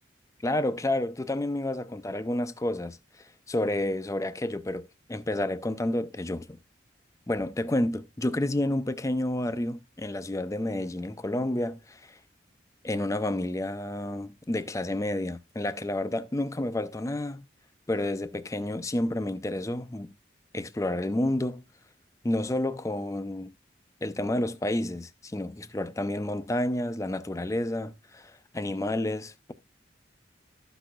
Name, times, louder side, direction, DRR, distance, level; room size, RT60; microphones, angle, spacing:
voice 1, 0.4-3.0 3.5-6.6 7.3-12.2 12.8-17.5 17.9-20.1 20.5-21.6 22.2-23.5 24.0-29.5, left 1 dB, 15° left, 0.4 m, -30 dB
13.0 x 6.0 x 2.5 m
head